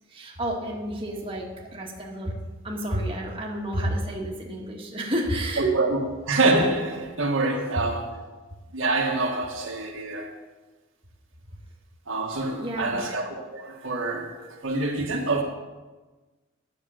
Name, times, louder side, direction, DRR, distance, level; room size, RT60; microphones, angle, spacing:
voice 1, 0.1-5.8 12.6-13.1, right 1 dB, 25° right, 1.5 m, -30 dB
voice 2, 6.3-8.2 8.7-10.3 12.1-15.4, right 2 dB, 75° right, 1.6 m, -26 dB
9.6 x 6.9 x 6.6 m
head